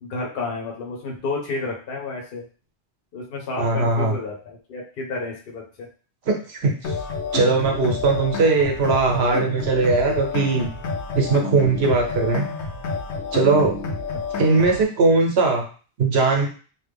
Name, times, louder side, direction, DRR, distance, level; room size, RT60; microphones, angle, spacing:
voice 1, 0.0-2.4 3.1-5.9, left 3 dB, 60° left, -1 dB, 0.9 m, -31 dB
voice 2, 3.6-4.2 6.3-6.9 7.3-10.7 11.1-12.4 13.3-13.8 14.3-15.6 16.0-16.5, right 3 dB, 70° right, 1 dB, 1.0 m, -20 dB
sound 1, 6.8-14.8, left 4 dB, 90° left, 0.9 m, -29 dB
3.1 x 2.0 x 3.4 m, 0.39 s
omnidirectional pair, 1.1 m